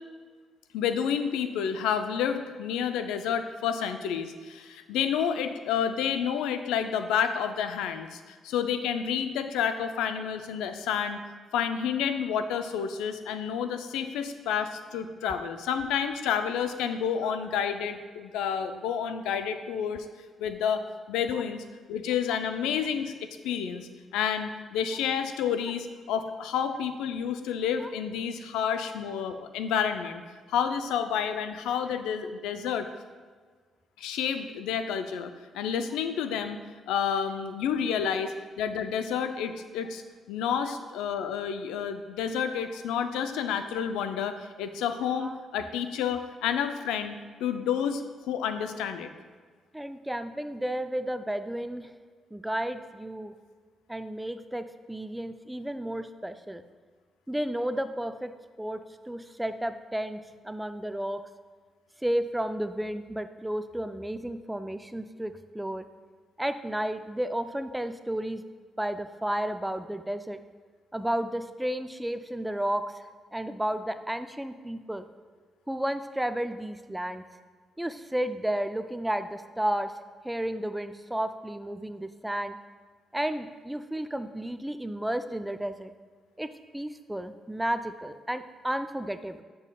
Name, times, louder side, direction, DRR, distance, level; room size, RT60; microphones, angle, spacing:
voice 1, 0.7-11.2 11.5-20.1 20.4-23.1 23.4-30.2 30.5-32.9 34.0-36.6 36.9-40.0 40.3-47.1 47.4-49.1, left 8 dB, 90° left, 9 dB, 0.3 m, -30 dB
voice 2, 49.7-51.9 52.3-53.3 53.9-56.6 57.3-61.3 62.0-65.9 66.4-68.4 68.8-70.4 70.9-73.0 73.3-75.1 75.7-77.2 77.8-79.9 80.2-82.6 83.1-85.9 86.4-89.4, right 1 dB, 10° right, 10 dB, 0.3 m, -32 dB
8.0 x 5.3 x 2.3 m, 1.5 s
supercardioid pair, 65°, 0 cm